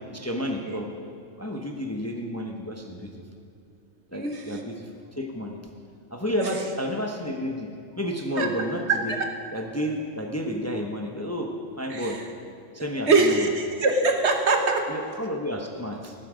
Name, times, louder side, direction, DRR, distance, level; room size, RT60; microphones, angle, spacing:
voice 1, 0.1-0.9 1.4-3.1 4.1-4.9 5.2-5.6 6.1-7.7 8.0-9.2 9.5-12.2 12.7-13.5 14.9-16.1, equal, 15° left, 2 dB, 0.9 m, -31 dB
voice 2, 4.1-4.6 6.4-6.5 8.4-8.5 8.9-9.2 11.9-12.2 13.1-14.8, right 3 dB, 60° right, 4 dB, 1.4 m, -23 dB
14.0 x 12.5 x 5.1 m, 2.4 s
omnidirectional pair, 1.3 m